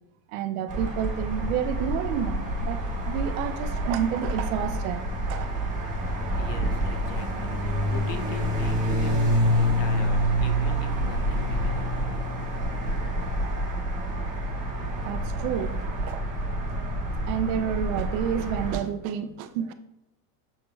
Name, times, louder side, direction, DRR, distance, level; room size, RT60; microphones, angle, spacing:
voice 1, 0.3-5.5 15.0-19.7, right 8 dB, 65° right, 0.5 m, -30 dB
sound 1, 0.7-18.8, equal, 15° right, 1.1 m, -27 dB
voice 2, 6.3-12.2, left 5 dB, 85° left, 0.8 m, -40 dB
6.5 x 2.2 x 3.0 m
supercardioid pair, 130°, 46 cm